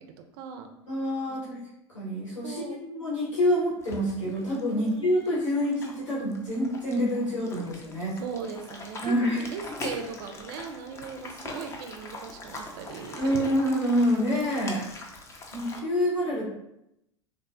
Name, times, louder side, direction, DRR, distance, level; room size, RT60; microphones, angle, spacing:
voice 1, 0.0-0.7 1.3-1.5 2.4-2.8 4.7-5.2 8.2-13.5, right 6 dB, 50° right, 6 dB, 0.4 m, -39 dB
voice 2, 0.9-1.6 1.9-8.2 9.0-9.4 13.1-14.9 15.5-16.4, equal, 80° left, -8 dB, 1.1 m, -27 dB
sound 1, 3.8-15.8, left 2 dB, 20° left, 0.4 m, -42 dB
3.3 x 2.0 x 2.4 m, 0.84 s
figure-of-eight pair, 80°, 16 cm